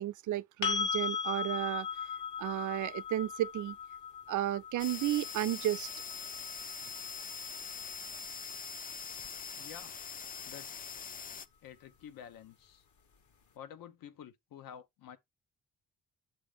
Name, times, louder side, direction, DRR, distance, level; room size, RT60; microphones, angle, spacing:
voice 1, 0.0-1.9 2.4-3.8 4.3-5.9, right 13 dB, 65° right, 0.5 m, -33 dB
sound 1, 0.6-8.4 11.3-11.4, left 6 dB, 60° left, 1.3 m, -38 dB
sound 2, 4.8-11.5, left 5 dB, 25° left, 0.4 m, -43 dB
voice 2, 9.5-9.9 10.5-10.8 11.6-12.8 13.5-15.2, left 9 dB, 80° left, 1.0 m, -50 dB
7.6 x 2.9 x 5.0 m
cardioid pair, 125°, 33 cm